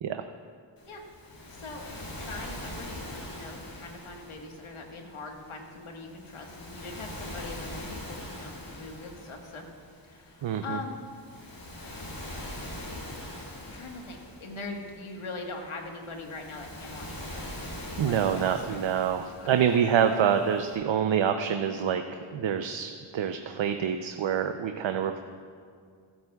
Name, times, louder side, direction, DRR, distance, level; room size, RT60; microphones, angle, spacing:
voice 1, 0.8-1.9 2.2-9.7 10.0-11.0 13.7-17.7 18.0-19.0 19.4-19.5, left 3 dB, 85° left, 2 dB, 1.6 m, -42 dB
Waves surf, 0.8-20.8, left 1 dB, 60° left, 3.1 m, -43 dB
voice 2, 10.4-10.8 18.0-22.0 22.3-25.2, right 8 dB, 65° right, 7 dB, 0.7 m, -26 dB
22.0 x 8.7 x 2.4 m, 2.1 s
cardioid pair, 40°, 48 cm